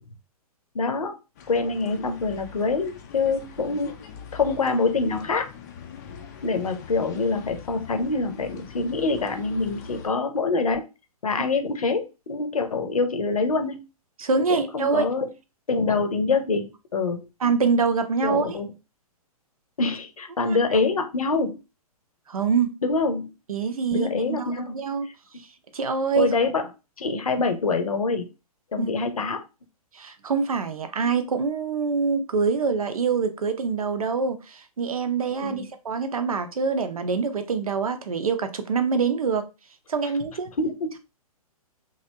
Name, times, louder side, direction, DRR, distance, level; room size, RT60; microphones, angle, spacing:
voice 1, 0.7-1.1 1.5-4.0 4.3-5.5 6.4-10.9 11.2-13.8 14.5-15.3 15.7-17.3 18.2-18.7 19.8-21.6 22.8-23.3 23.9-24.7 26.2-26.7 27.0-28.3 28.7-29.4 35.4-35.7 40.6-41.0, left 3 dB, 65° left, 6 dB, 0.7 m, -25 dB
sound 1, 1.3-10.1, left 6 dB, 30° left, 0.4 m, -43 dB
voice 2, 14.2-15.1 17.4-18.6 20.4-20.8 22.3-22.7 23.5-25.1 25.7-26.3 28.8-28.9 29.9-39.5 39.9-40.5, right 5 dB, 65° right, 8 dB, 0.6 m, -25 dB
3.1 x 2.7 x 2.7 m, 0.28 s
figure-of-eight pair, 120°, 20 cm